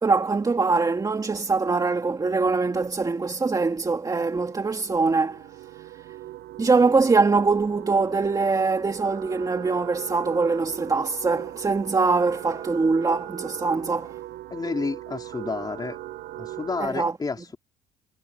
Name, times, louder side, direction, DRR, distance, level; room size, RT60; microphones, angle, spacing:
voice 1, 0.0-5.5 5.7-5.9 6.6-14.2 16.8-17.2, right 4 dB, 20° right, 2.4 m, -23 dB
sound 1, 3.3-16.9, right 15 dB, 75° right, 7.0 m, -39 dB
voice 2, 14.5-16.0 16.4-17.6, left 4 dB, 25° left, 3.7 m, -30 dB
cardioid pair, 110°, 17 cm